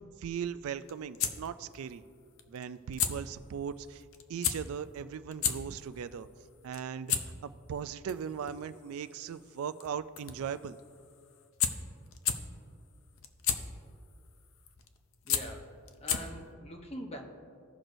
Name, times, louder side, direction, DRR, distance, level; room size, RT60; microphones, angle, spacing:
voice 1, 0.2-2.0 2.5-4.0 4.3-6.3 6.6-10.8, right 7 dB, 85° right, 13 dB, 0.3 m, -38 dB
sound 1, 0.6-16.5, left 8 dB, 70° left, 0.6 m, -36 dB
voice 2, 15.2-17.2, equal, 30° left, 3 dB, 0.9 m, -44 dB
16.5 x 6.1 x 2.6 m, 2.3 s
head